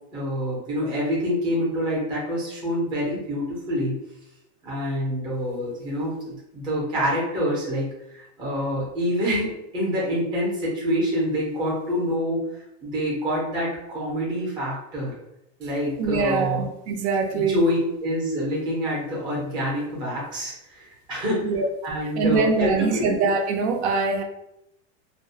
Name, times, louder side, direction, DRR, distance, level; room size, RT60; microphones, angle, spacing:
voice 1, 0.1-4.0 4.6-12.4 12.8-15.1 15.6-16.7 17.3-21.5 21.8-23.1, equal, 15° right, -5 dB, 0.5 m, -26 dB
voice 2, 16.0-17.6 21.4-21.7 22.2-24.2, right 4 dB, 70° right, 4 dB, 0.5 m, -23 dB
2.3 x 2.0 x 2.7 m, 0.84 s
supercardioid pair, 175°, 34 cm